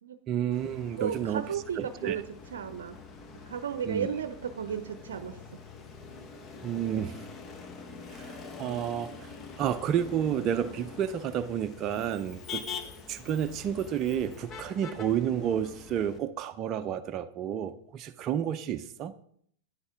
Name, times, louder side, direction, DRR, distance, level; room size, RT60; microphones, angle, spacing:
voice 1, 0.3-1.4 1.8-2.2 3.8-4.1 6.6-7.1 8.1-19.1, right 9 dB, 35° right, 8 dB, 0.5 m, -31 dB
Motor vehicle (road), 0.5-16.2, left 5 dB, 30° left, 1.3 m, -45 dB
voice 2, 1.0-2.2 2.5-3.0 3.5-5.4 6.9-7.1 8.4-8.5 9.1-9.2, right 7 dB, 80° right, 10 dB, 0.6 m, -34 dB
9.7 x 9.7 x 3.6 m, 0.64 s
hypercardioid pair, 105°, 0 cm